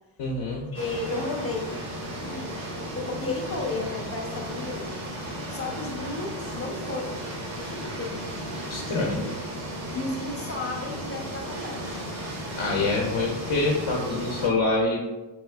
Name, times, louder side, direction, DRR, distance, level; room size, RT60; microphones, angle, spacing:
voice 1, 0.2-0.7 8.7-9.3 12.5-15.0, left 3 dB, 65° left, -2 dB, 0.6 m, -26 dB
voice 2, 0.7-1.8 2.2-2.6 3.0-5.0 5.5-7.2 7.5-8.2 9.9-12.1, left 3 dB, 30° left, 0 dB, 0.5 m, -33 dB
sound 1, 0.7-14.5, right 1 dB, 70° right, 1.0 m, -35 dB
3.6 x 2.3 x 2.2 m, 1.1 s
wide cardioid pair, 95°, 49 cm